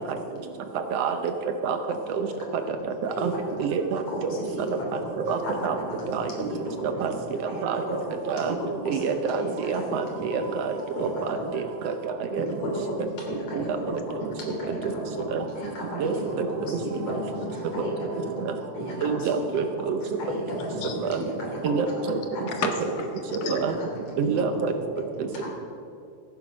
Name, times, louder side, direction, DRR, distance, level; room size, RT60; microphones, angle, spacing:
voice 1, 3.1-3.4 4.1-4.9 5.1-7.1 7.5-8.0 8.4-9.1 9.3-9.8 10.1-10.5 10.9-11.0 11.4-11.5 12.3-14.3 14.6-15.3 15.5-18.3 18.7-19.5 19.8-20.8 21.2-21.8 22.3-22.5 23.4-24.9 25.3-25.5, right 1 dB, 50° left, -2 dB, 4.2 m, -33 dB
voice 2, 3.6-4.3 5.3-5.4 5.6-5.8 6.1-6.3 7.0-7.1 7.6-7.8 8.3-8.5 8.9-10.7 11.0-11.9 12.3-12.4 13.6-13.7 15.3-15.4 16.0-16.1 18.5-18.6 19.0-20.0 21.1-21.2 21.6-22.2 23.5-23.7 24.2-24.7, right 6 dB, 75° right, 7 dB, 1.5 m, -27 dB
voice 3, 16.8-18.1 20.7-21.1 21.4-21.5 22.1-23.5, left 6 dB, 70° left, 6 dB, 1.7 m, -36 dB
14.0 x 10.5 x 6.2 m, 2.6 s
omnidirectional pair, 3.5 m